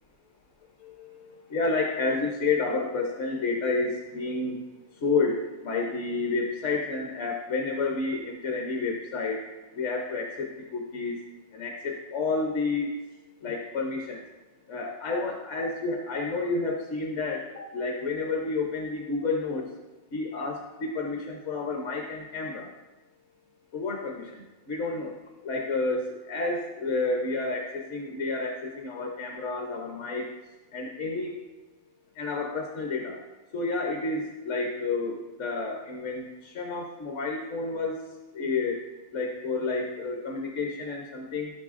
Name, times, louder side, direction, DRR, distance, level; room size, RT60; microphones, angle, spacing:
voice 1, 0.8-4.6 5.0-9.4 9.7-11.2 11.5-12.9 13.4-14.2 14.7-19.6 20.1-22.7 23.7-24.3 24.7-25.1 25.4-30.2 30.7-31.4 32.2-33.2 33.5-37.9 38.3-38.8 39.1-41.5, left 3 dB, 60° left, 1 dB, 1.2 m, -30 dB
14.5 x 6.2 x 2.5 m, 1.1 s
omnidirectional pair, 1.4 m